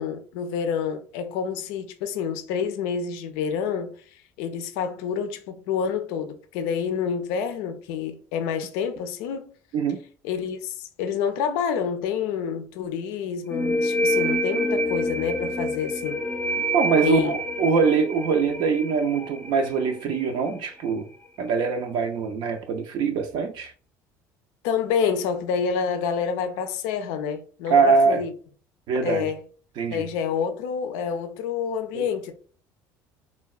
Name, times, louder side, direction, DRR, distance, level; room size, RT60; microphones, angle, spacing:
voice 1, 0.0-9.5 10.2-16.2 17.0-17.3 24.6-28.3 29.0-29.4 29.9-32.3, left 7 dB, 80° left, 0.4 m, -28 dB
sound 1, 13.5-20.9, equal, 10° left, 0.4 m, -27 dB
voice 2, 16.7-21.1 21.4-23.7 27.7-28.2 28.9-29.3 29.8-30.1 31.9-32.0, right 5 dB, 60° right, 0.4 m, -23 dB
3.4 x 2.1 x 2.3 m
supercardioid pair, 80°, 9 cm